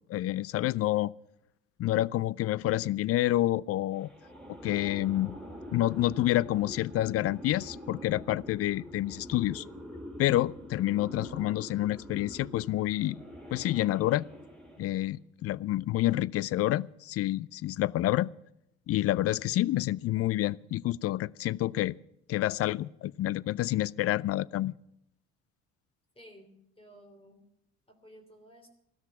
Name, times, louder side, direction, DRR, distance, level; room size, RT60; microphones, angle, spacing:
voice 1, 0.1-1.1 1.8-4.1 4.6-5.3 5.7-9.6 10.2-13.2 13.5-14.3 14.8-18.3 18.9-22.0 22.3-24.7, left 15 dB, 45° left, 0.5 m, -28 dB
sound 1, 4.0-15.1, equal, ahead, 4.2 m, -45 dB
voice 2, 26.1-27.4 27.9-28.7, equal, 15° left, 3.1 m, -54 dB
15.5 x 13.0 x 5.8 m
hypercardioid pair, 60°, 32 cm